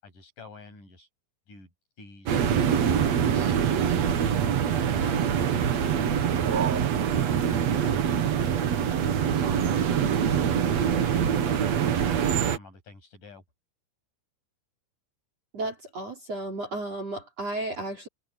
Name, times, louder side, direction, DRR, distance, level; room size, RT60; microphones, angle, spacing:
voice 1, 0.0-1.1 1.5-1.7 2.0-3.6 4.8-5.8 6.5-6.7 7.0-11.9 12.2-13.4, left 3 dB, 40° left, 9.3 m, -49 dB
sound 1, 2.3-12.6, right 8 dB, 75° right, 1.5 m, -24 dB
voice 2, 15.5-18.1, right 2 dB, 35° right, 4.3 m, -33 dB
open air
omnidirectional pair, 5.6 m